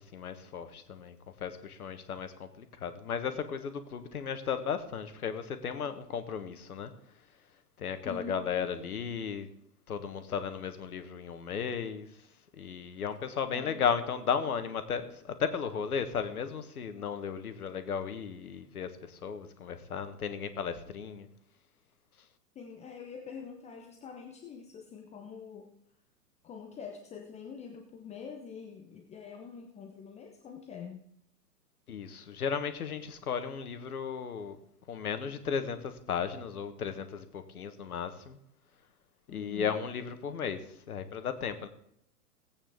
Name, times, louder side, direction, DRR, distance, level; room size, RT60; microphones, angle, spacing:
voice 1, 0.1-6.9 7.8-9.5 9.9-12.1 12.5-21.3 31.9-34.6 34.9-38.4 39.3-40.6 40.9-41.7, left 7 dB, 65° left, 9 dB, 1.5 m, -35 dB
voice 2, 8.0-8.4 13.5-13.9 22.5-25.7 26.4-31.1 39.3-39.8, left 6 dB, 15° left, 3 dB, 0.8 m, -45 dB
17.5 x 8.7 x 3.6 m, 0.74 s
figure-of-eight pair, 105°, 47 cm